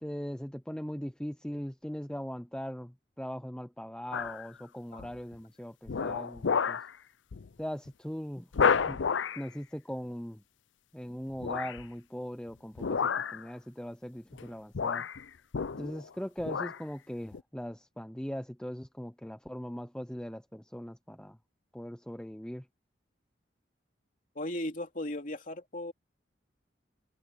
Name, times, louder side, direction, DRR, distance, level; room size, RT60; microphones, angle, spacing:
voice 1, 0.0-6.8 7.6-8.5 8.9-9.0 9.4-10.4 10.9-13.0 13.3-15.0 15.8-21.4 21.7-22.6, equal, 5° left, 0.6 m, -40 dB
sound 1, 4.1-4.5 5.0-5.3 5.9-6.9 7.3-7.5 7.9-8.0 8.5-9.5 11.4-11.9 12.8-13.4 14.3-14.5 14.7-16.1 16.4-16.8 17.3-17.4, left 6 dB, 75° left, 0.5 m, -30 dB
voice 2, 24.3-25.9, left 1 dB, 45° left, 3.3 m, -37 dB
head